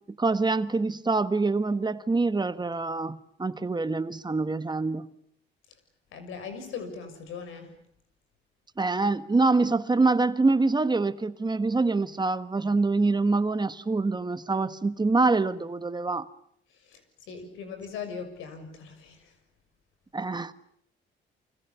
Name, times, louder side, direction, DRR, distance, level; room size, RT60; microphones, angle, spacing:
voice 1, 0.2-5.1 8.8-16.3 20.1-20.5, right 3 dB, 20° right, 1.4 m, -25 dB
voice 2, 6.1-7.7 16.8-17.0 17.3-19.3, left 6 dB, 90° left, 6.5 m, -39 dB
30.0 x 25.5 x 7.0 m
cardioid pair, 90°, 20 cm